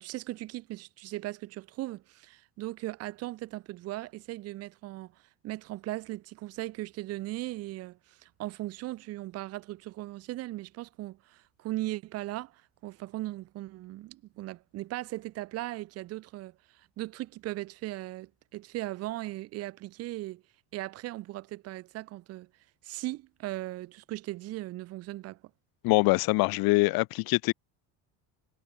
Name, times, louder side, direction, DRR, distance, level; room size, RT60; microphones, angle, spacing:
voice 1, 0.0-20.4 20.7-22.5 22.8-25.4, right 17 dB, 35° right, 0.6 m, -38 dB
voice 2, 25.8-27.5, left 24 dB, 55° left, 0.9 m, -24 dB
cardioid pair, 180°, 45 cm